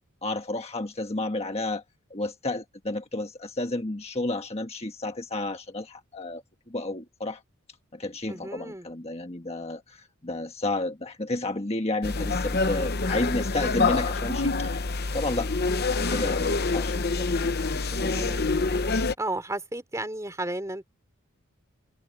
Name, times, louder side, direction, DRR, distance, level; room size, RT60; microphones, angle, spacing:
voice 1, 0.2-1.8 2.1-7.4 7.9-14.8 15.1-18.1, left 2 dB, 30° left, 1.4 m, -32 dB
voice 2, 8.3-8.9 18.1-18.5 19.2-20.8, right 1 dB, 15° right, 3.6 m, -33 dB
sound 1, 12.0-19.1, left 3 dB, 45° left, 0.9 m, -26 dB
head